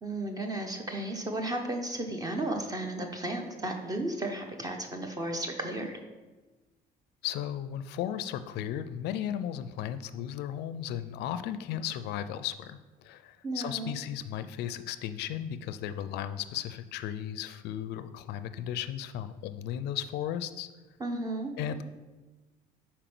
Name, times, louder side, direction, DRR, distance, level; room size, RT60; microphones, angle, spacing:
voice 1, 0.0-5.9 13.4-14.0 21.0-21.5, right 1 dB, 20° right, 3 dB, 0.8 m, -34 dB
voice 2, 7.2-20.7 21.6-21.8, left 10 dB, 80° left, 11 dB, 0.4 m, -35 dB
5.1 x 4.3 x 6.0 m, 1.2 s
cardioid pair, 110°, 17 cm